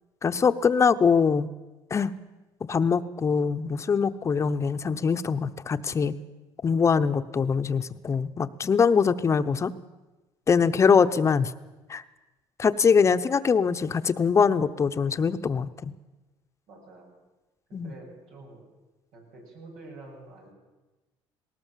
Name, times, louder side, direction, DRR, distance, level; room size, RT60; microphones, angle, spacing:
voice 1, 0.2-1.5 1.9-2.1 2.7-6.1 6.6-9.7 10.5-11.5 11.9-12.0 12.6-15.9 17.7-17.9, left 6 dB, 30° left, 10 dB, 0.8 m, -23 dB
voice 2, 16.7-17.2 17.8-18.7 19.1-20.5, right 2 dB, 90° right, -1 dB, 7.4 m, -47 dB
19.0 x 18.5 x 7.4 m, 1.1 s
cardioid pair, 115°, 10 cm